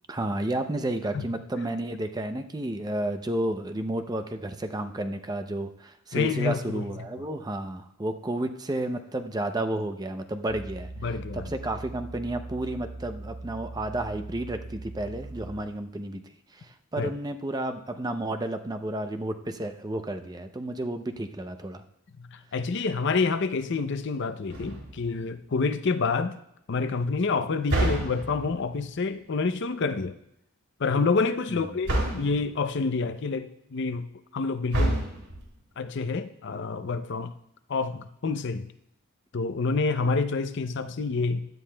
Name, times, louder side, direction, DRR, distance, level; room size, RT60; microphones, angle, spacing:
voice 1, 0.1-16.2 16.5-21.8 31.5-31.6, right 1 dB, 20° right, 0.5 m, -32 dB
voice 2, 6.1-6.8 11.0-11.5 17.0-17.1 22.2-26.4 26.7-30.1 30.8-34.1 34.3-35.0 35.8-37.3 37.7-38.7 39.3-41.4, left 4 dB, 55° left, 0.5 m, -28 dB
sound 1, 10.5-15.8, right 2 dB, 35° right, 3.1 m, -41 dB
sound 2, 24.5-25.1 27.7-28.6 31.9-32.5 34.7-35.5, right 1 dB, 80° right, 2.8 m, -28 dB
16.0 x 11.5 x 2.2 m
head